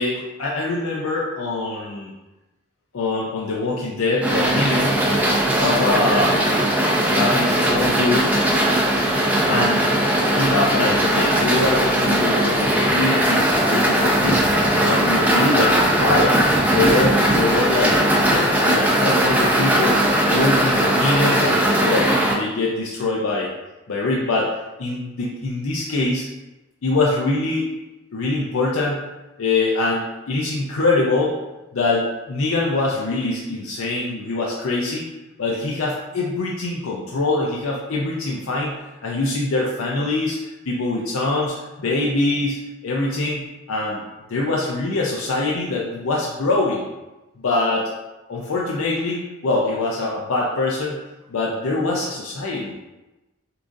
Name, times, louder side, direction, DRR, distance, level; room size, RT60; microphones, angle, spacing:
voice 1, 0.0-2.1 2.9-5.0 5.6-6.4 7.1-8.3 9.5-9.9 10.3-16.4 16.7-17.9 18.3-23.5 23.9-26.3 26.8-27.7 28.1-29.1 29.4-31.4 31.7-35.1 35.4-44.0 44.3-46.9 47.4-47.9 48.3-51.0 51.3-52.7, left 2 dB, 80° left, -3 dB, 0.6 m, -23 dB
sound 1, 4.2-22.3, right 1 dB, 10° right, 0.5 m, -19 dB
6.7 x 2.5 x 2.6 m, 1.1 s
head